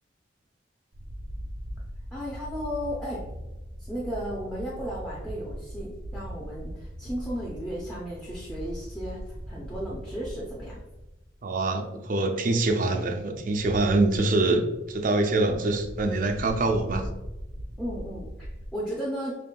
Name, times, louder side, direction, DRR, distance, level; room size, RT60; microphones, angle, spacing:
sound 1, 0.9-11.5 11.8-11.9 13.0-18.7, equal, 75° right, 0.8 m, -40 dB
voice 1, 2.1-3.3 3.8-10.8 17.8-19.3, equal, 5° left, -7 dB, 0.6 m, -35 dB
voice 2, 11.4-17.1, right 2 dB, 45° right, 5 dB, 0.4 m, -25 dB
5.3 x 3.2 x 2.2 m, 1.0 s
head